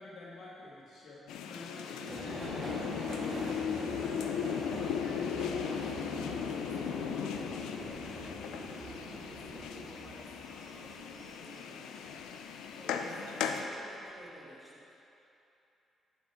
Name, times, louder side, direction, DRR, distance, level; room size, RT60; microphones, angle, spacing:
voice 1, 0.0-3.1 3.8-4.6 12.8-13.6, left 2 dB, 65° left, -6 dB, 1.9 m, -49 dB
sound 1, 1.3-13.7, left 8 dB, 90° left, 0.5 m, -37 dB
voice 2, 2.0-3.0 3.4-12.2 12.5-13.1 13.4-15.0, right 1 dB, 5° right, -6 dB, 2.2 m, -54 dB
Subway metro underground, 2.1-12.8 13.2-13.9 14.1-14.3, right 2 dB, 40° right, 1.0 m, -44 dB
10.0 x 7.5 x 3.6 m, 2.9 s
cardioid pair, 90°, 0 cm